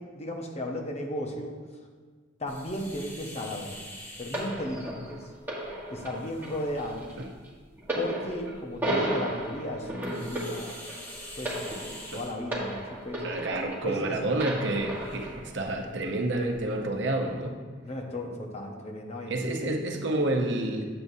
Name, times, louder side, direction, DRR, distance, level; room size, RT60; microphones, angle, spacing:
voice 1, 0.0-1.6 2.4-3.8 4.2-5.3 5.9-7.2 7.9-10.7 11.4-13.2 13.8-14.2 17.8-19.8, left 1 dB, 35° left, 1 dB, 0.8 m, -35 dB
sound 1, 2.5-16.6, left 1 dB, 10° left, 1.0 m, -48 dB
sound 2, 4.3-14.0 14.4-15.4 16.2-16.3, right 1 dB, 10° right, 1.4 m, -34 dB
voice 2, 13.2-17.6 19.3-20.8, right 2 dB, 65° right, 2 dB, 0.8 m, -29 dB
8.3 x 7.8 x 2.7 m, 1.5 s
head